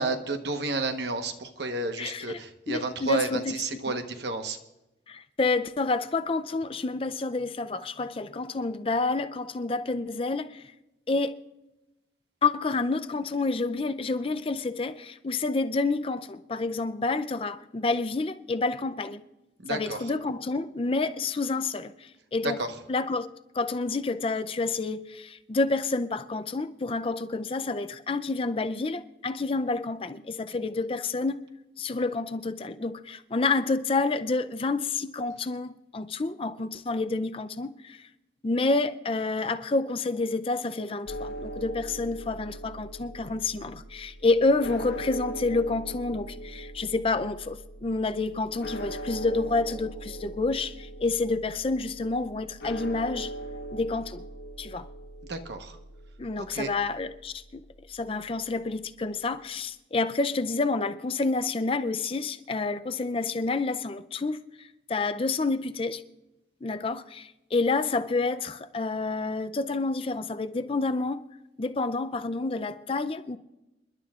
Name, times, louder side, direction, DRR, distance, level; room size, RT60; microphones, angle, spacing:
voice 1, 0.0-4.6 19.6-20.0 22.4-22.7 55.3-55.8 56.4-56.7, right 3 dB, 70° right, 1.1 m, -31 dB
voice 2, 2.0-2.4 2.7-3.6 3.9-4.0 5.1-10.6 11.1-11.3 12.4-19.2 19.7-22.6 22.9-23.3 23.5-31.4 31.8-38.1 38.4-53.3 53.7-54.2 54.6-54.9 56.2-57.6 57.9-66.0 66.6-71.2 71.6-73.4, left 3 dB, 30° left, 0.5 m, -29 dB
sound 1, 41.1-58.9, right 1 dB, 65° left, 1.2 m, -41 dB
sound 2, 48.3-51.2, right 1 dB, 25° right, 1.7 m, -53 dB
28.5 x 11.5 x 2.4 m
head